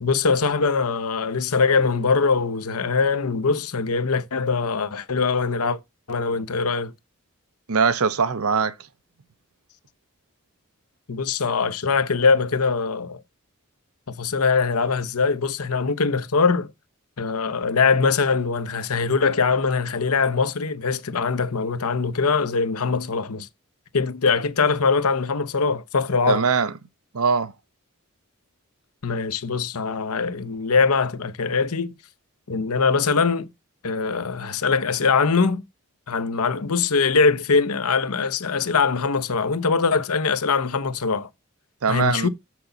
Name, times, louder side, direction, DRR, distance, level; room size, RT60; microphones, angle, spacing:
voice 1, 0.0-5.8 6.1-6.9 11.1-13.2 14.1-16.7 17.2-23.5 23.9-26.4 29.0-31.9 32.5-33.5 33.8-35.6 36.1-41.3 41.9-42.3, left 4 dB, 85° left, 0.8 m, -22 dB
voice 2, 7.7-8.7 26.3-26.7 27.1-27.5 41.8-42.3, right 5 dB, 80° right, 0.7 m, -21 dB
7.0 x 6.0 x 3.9 m
head